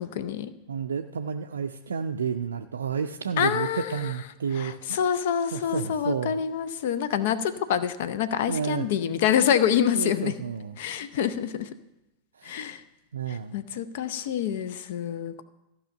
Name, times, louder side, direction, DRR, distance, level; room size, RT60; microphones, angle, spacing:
voice 1, 0.0-0.5 3.4-4.1 4.5-10.3 10.8-11.7 12.4-12.8 13.3-15.4, left 9 dB, 55° left, 14 dB, 0.6 m, -26 dB
voice 2, 0.7-5.0 5.5-6.4 8.5-8.9 9.9-10.8 12.3-12.6 13.1-13.5, right 6 dB, 70° right, 4 dB, 0.4 m, -31 dB
14.0 x 5.5 x 6.6 m, 0.94 s
figure-of-eight pair, 90°, 0 cm